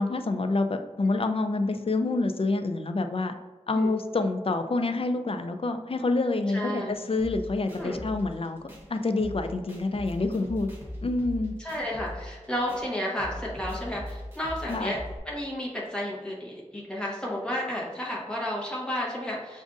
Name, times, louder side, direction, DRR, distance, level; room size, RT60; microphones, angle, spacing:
voice 1, 0.0-3.3 3.7-10.7 11.0-11.5 14.7-15.0, left 3 dB, 50° left, 7 dB, 0.4 m, -27 dB
voice 2, 6.5-6.9 7.7-8.0 11.6-15.0 15.3-19.6, left 1 dB, 5° left, -5 dB, 1.1 m, -32 dB
sound 1, 7.2-15.2, left 1 dB, 20° right, 1.2 m, -41 dB
6.1 x 2.5 x 2.5 m, 1.3 s
wide cardioid pair, 55°, 12 cm